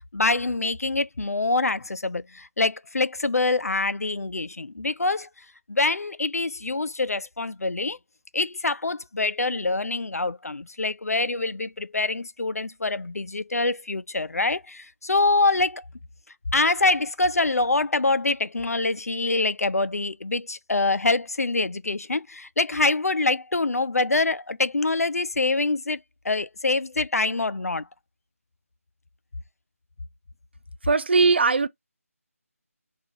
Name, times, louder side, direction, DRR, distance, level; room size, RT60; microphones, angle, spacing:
voice 1, 0.1-5.3 5.7-8.0 8.3-15.8 16.5-26.0 26.2-27.9, left 3 dB, 85° left, 0.3 m, -25 dB
voice 2, 30.8-31.7, right 4 dB, 45° right, 0.4 m, -19 dB
3.5 x 2.4 x 2.9 m
figure-of-eight pair, 155°, 8 cm